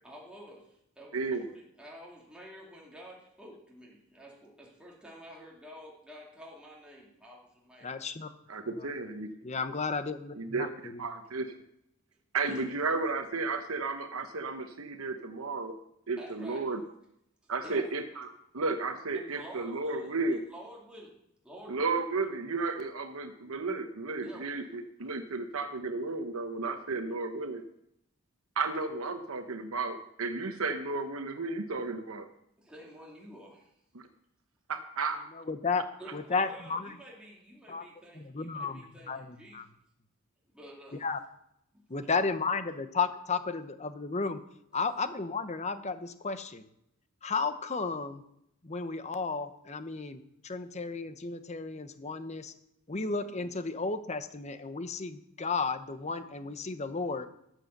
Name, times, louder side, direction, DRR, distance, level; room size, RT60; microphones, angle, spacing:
voice 1, 0.0-8.0 12.4-12.6 16.2-16.7 17.6-17.9 19.1-20.1 20.5-21.2 21.4-21.9 24.2-24.5 32.6-33.7 36.0-39.6 40.5-41.1 42.0-42.1, equal, 5° right, -3 dB, 2.4 m, -49 dB
voice 2, 7.8-8.3 8.8-8.9 9.4-11.0 35.3-37.0 37.7-37.8 38.1-39.6 41.0-41.2 41.9-44.4 44.7-46.7 47.2-48.2 48.6-52.5 52.9-57.3, left 4 dB, 30° left, 11 dB, 0.8 m, -33 dB
voice 3, 8.5-9.3 10.4-10.7 11.0-11.5 12.3-15.8 16.1-16.8 17.5-20.4 21.7-27.6 28.6-32.3 33.9-34.0 34.7-35.2, right 3 dB, 75° right, 7 dB, 1.0 m, -33 dB
13.0 x 7.6 x 6.6 m, 0.78 s
head